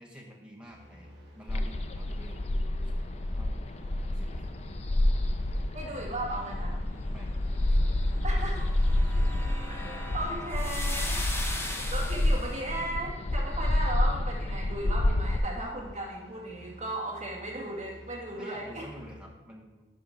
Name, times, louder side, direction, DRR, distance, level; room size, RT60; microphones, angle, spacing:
voice 1, 0.0-2.5 2.8-3.1 3.3-3.5 4.0-4.4 7.1-7.8 8.3-8.4 11.1-11.2 18.4-19.8, equal, 5° right, -1 dB, 1.2 m, -49 dB
sound 1, 0.7-19.3, left 1 dB, 70° right, 2.3 m, -51 dB
sound 2, 1.5-15.4, left 1 dB, 35° left, 0.4 m, -29 dB
voice 2, 5.7-6.8 8.2-8.6 9.7-11.2 11.8-18.9, right 1 dB, 35° right, -3 dB, 1.9 m, -36 dB
sound 3, 8.0-12.7, left 1 dB, 15° left, 0.8 m, -38 dB
11.0 x 5.0 x 3.8 m, 1.2 s
head